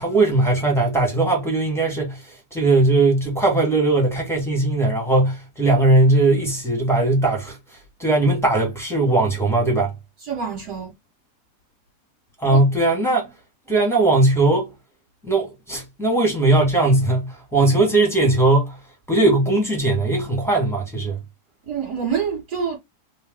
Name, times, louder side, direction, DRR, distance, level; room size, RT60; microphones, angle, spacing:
voice 1, 0.0-9.9 12.4-13.3 13.7-14.7 15.2-18.8 19.1-21.2, right 2 dB, ahead, 1.5 m, -19 dB
voice 2, 10.3-10.9 12.5-12.6 21.7-22.8, right 7 dB, 70° right, 2.1 m, -26 dB
3.4 x 3.0 x 3.6 m
omnidirectional pair, 1.8 m